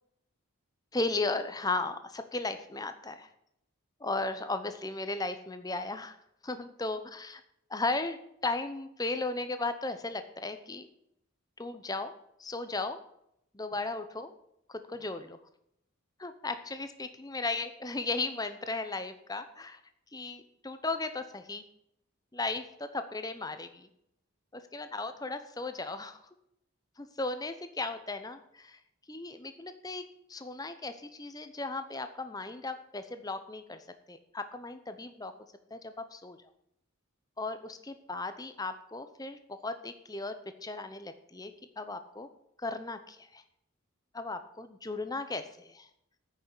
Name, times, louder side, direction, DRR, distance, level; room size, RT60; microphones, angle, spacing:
voice 1, 0.9-3.3 4.0-6.2 6.4-7.4 7.7-10.9 11.6-13.0 13.5-14.3 14.7-15.4 16.2-19.8 20.1-21.6 22.3-23.9 24.5-26.2 27.0-28.8 29.1-30.0 30.3-33.8 34.1-35.3 35.7-36.4 37.4-40.3 40.6-41.5 41.8-42.3 42.6-43.4 44.1-45.9, left 3 dB, 15° left, 9 dB, 0.8 m, -36 dB
9.2 x 6.4 x 8.1 m, 0.76 s
head